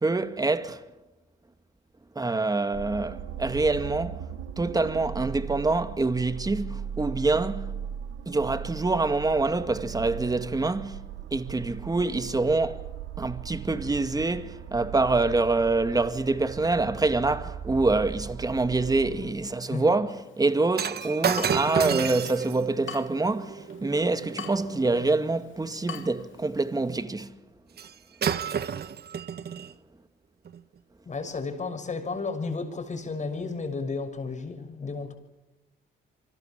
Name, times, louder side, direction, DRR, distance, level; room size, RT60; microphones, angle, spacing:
voice 1, 0.0-0.8 2.2-4.3 4.6-7.7 8.3-12.9 13.2-27.4, right 3 dB, 20° right, 2.1 m, -26 dB
sound 1, 2.7-19.3, right 8 dB, 85° right, 1.8 m, -38 dB
Water tap faucet / Drip, 20.1-27.0, left 7 dB, 75° left, 2.6 m, -45 dB
Shatter, 20.7-25.1 27.8-27.9 28.2-29.7 30.4-30.6, right 8 dB, 55° right, 1.7 m, -31 dB
voice 2, 31.0-35.1, left 4 dB, 35° left, 6.3 m, -33 dB
28.5 x 25.0 x 7.5 m
cardioid pair, 90°, 20 cm